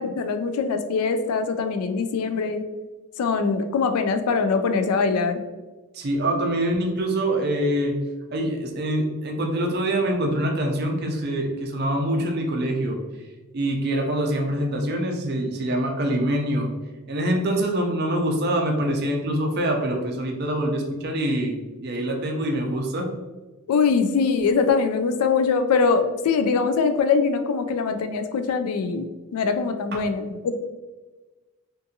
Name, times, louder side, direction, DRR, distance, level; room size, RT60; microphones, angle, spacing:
voice 1, 0.0-2.7 3.2-5.4 23.7-30.6, left 5 dB, 85° left, 8 dB, 0.3 m, -23 dB
voice 2, 5.9-8.0 8.3-13.0 13.5-16.7 17.1-21.6 21.8-23.1 29.9-30.0, right 1 dB, 45° right, 2 dB, 0.4 m, -25 dB
2.5 x 2.4 x 2.6 m, 1.2 s
head